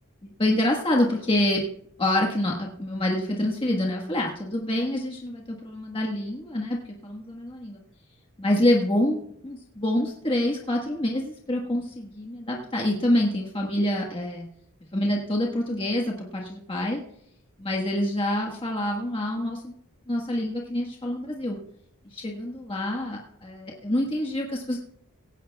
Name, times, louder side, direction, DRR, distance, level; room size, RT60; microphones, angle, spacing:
voice 1, 0.2-1.7 2.0-6.8 7.0-7.8 8.4-14.5 14.9-17.0 17.6-19.7 20.1-21.6 22.1-24.8, left 1 dB, 25° left, -1 dB, 1.4 m, -26 dB
17.0 x 16.5 x 2.3 m, 0.72 s
head